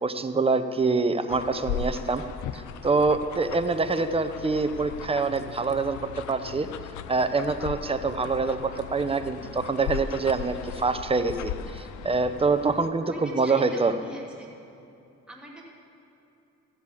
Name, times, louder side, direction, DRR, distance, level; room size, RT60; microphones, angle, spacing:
voice 1, 0.0-2.2 2.5-6.0 6.3-6.7 7.1-13.9, right 4 dB, 20° right, 9 dB, 0.8 m, -25 dB
sound 1, 1.3-12.9, left 8 dB, 75° left, 0.6 m, -38 dB
voice 2, 13.0-14.5 15.3-15.6, right 1 dB, 5° right, -4 dB, 2.9 m, -44 dB
14.5 x 8.0 x 7.0 m, 2.7 s
cardioid pair, 90°, 30 cm